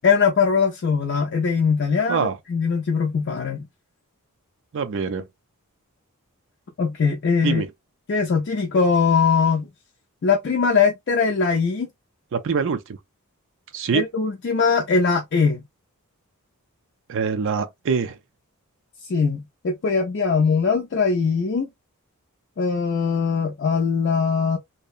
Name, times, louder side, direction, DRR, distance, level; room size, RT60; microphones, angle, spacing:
voice 1, 0.0-3.6 6.8-7.6 8.1-9.7 10.2-11.9 13.9-15.6 19.0-21.7 22.6-24.6, left 5 dB, 50° left, 0.4 m, -21 dB
voice 2, 4.7-5.3 7.4-7.7 12.3-13.0 13.7-14.1 17.1-18.2, right 5 dB, 60° right, 0.4 m, -24 dB
2.7 x 2.0 x 2.4 m
head